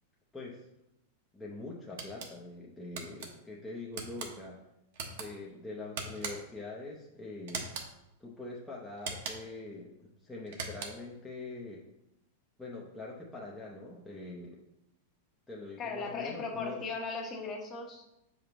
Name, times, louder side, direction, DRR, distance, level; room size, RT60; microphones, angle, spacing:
voice 1, 1.3-4.6 5.1-7.6 8.2-11.8 12.6-14.6 15.5-16.8, left 2 dB, 5° left, -5 dB, 0.7 m, -43 dB
sound 1, 2.0-2.3 3.0-3.3 3.9-4.3 4.9-5.3 6.0-6.6 7.5-7.9 9.0-9.6 10.5-11.1, right 4 dB, 60° right, 1.1 m, -40 dB
voice 2, 15.8-18.1, left 4 dB, 25° left, 1 dB, 1.0 m, -37 dB
7.0 x 5.1 x 3.0 m, 0.87 s
supercardioid pair, 160°, 0 cm